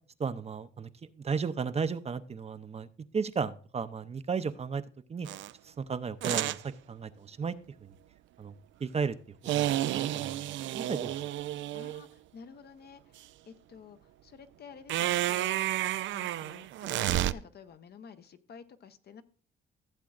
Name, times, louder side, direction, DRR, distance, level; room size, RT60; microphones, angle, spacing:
voice 1, 0.2-0.9 1.2-2.9 3.1-4.8 5.1-5.3 5.7-6.6 6.9-7.5 7.8-7.9 8.4-8.5 8.8-9.2 9.4-9.7 9.9-10.3 10.7-11.1, right 5 dB, 30° right, 12 dB, 0.6 m, -34 dB
sound 1, 5.3-5.5 6.2-6.6 9.5-12.0 14.9-17.3, right 14 dB, 75° right, 0.4 m, -31 dB
voice 2, 11.7-15.6 16.1-19.2, left 6 dB, 55° left, 10 dB, 0.9 m, -51 dB
15.0 x 7.5 x 2.4 m, 0.42 s
cardioid pair, 90°, 20 cm